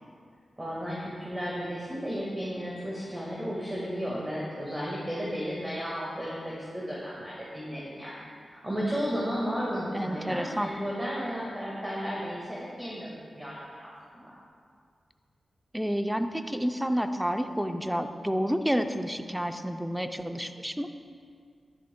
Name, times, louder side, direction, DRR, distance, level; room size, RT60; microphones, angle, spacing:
voice 1, 0.6-14.3, equal, 20° right, -6 dB, 1.6 m, -34 dB
voice 2, 9.9-10.7 15.7-20.9, equal, 5° right, 7 dB, 0.5 m, -29 dB
11.0 x 10.0 x 2.2 m, 2.2 s
cardioid pair, 65°, 0 cm